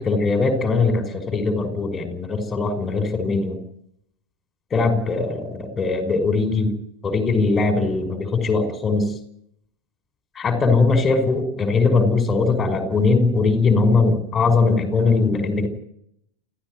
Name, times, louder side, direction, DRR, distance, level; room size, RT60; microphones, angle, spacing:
voice 1, 0.0-3.6 4.7-6.7 7.0-9.1 10.3-15.7, left 3 dB, 20° left, 8 dB, 5.6 m, -20 dB
29.5 x 14.5 x 9.4 m, 0.74 s
figure-of-eight pair, 90°, 0 cm